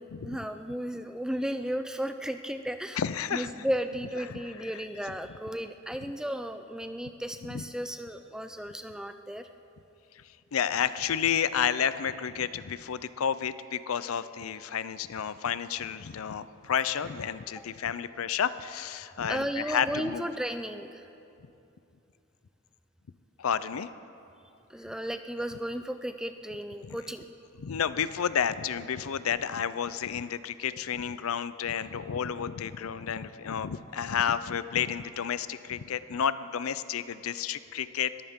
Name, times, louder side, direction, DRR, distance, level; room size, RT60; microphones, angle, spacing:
voice 1, 0.0-3.0 3.3-9.5 17.6-17.7 19.3-21.0 24.7-27.3, equal, 5° right, 8 dB, 0.4 m, -34 dB
voice 2, 3.0-3.5 4.3-4.4 4.7-4.8 7.5-7.6 10.1-10.2 10.5-20.2 23.4-23.9 26.9-27.0 27.6-38.1, left 8 dB, 85° left, 15 dB, 0.5 m, -31 dB
21.0 x 14.5 x 3.7 m, 2.7 s
head